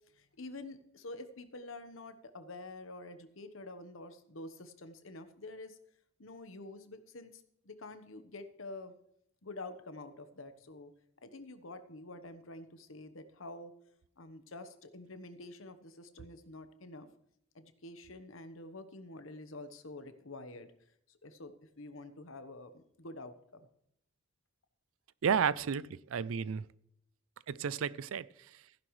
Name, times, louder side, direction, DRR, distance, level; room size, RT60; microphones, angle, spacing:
voice 1, 0.1-5.8 6.2-9.0 9.4-10.9 11.2-13.7 14.2-17.1 17.5-20.7 21.1-23.7, left 2 dB, 65° left, 1.1 m, -48 dB
voice 2, 25.2-26.7 27.5-28.6, right 7 dB, 70° right, 0.4 m, -32 dB
15.0 x 10.5 x 3.2 m
head